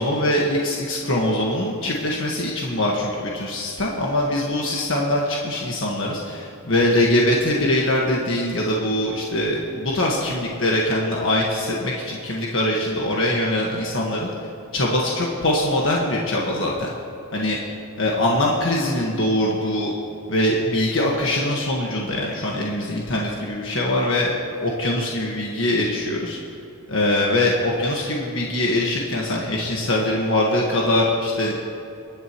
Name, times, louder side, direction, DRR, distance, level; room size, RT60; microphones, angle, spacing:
voice 1, 0.0-14.3 14.7-16.9 17.3-17.6 18.0-19.9 20.3-24.3 24.6-26.4 26.9-31.5, left 1 dB, 60° left, -3 dB, 1.6 m, -22 dB
28.0 x 10.5 x 3.1 m, 2.7 s
head